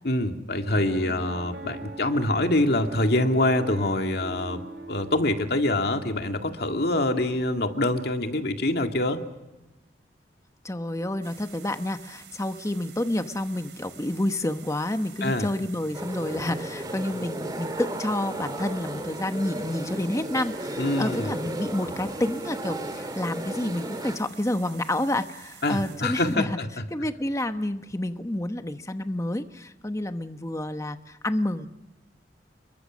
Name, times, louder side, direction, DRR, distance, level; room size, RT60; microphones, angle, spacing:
voice 1, 0.0-9.2 15.2-15.5 20.8-21.3 25.6-26.7, left 1 dB, 65° left, 5 dB, 2.2 m, -25 dB
Piano, 0.7-6.0, right 2 dB, 65° right, 2.9 m, -41 dB
voice 2, 10.6-26.6 26.9-31.7, left 1 dB, 20° left, 8 dB, 1.0 m, -29 dB
sound 1, 11.2-26.4, right 8 dB, 85° right, 4.7 m, -49 dB
sound 2, 15.9-24.2, right 1 dB, 25° right, 2.7 m, -34 dB
28.5 x 23.0 x 6.3 m, 1.0 s
head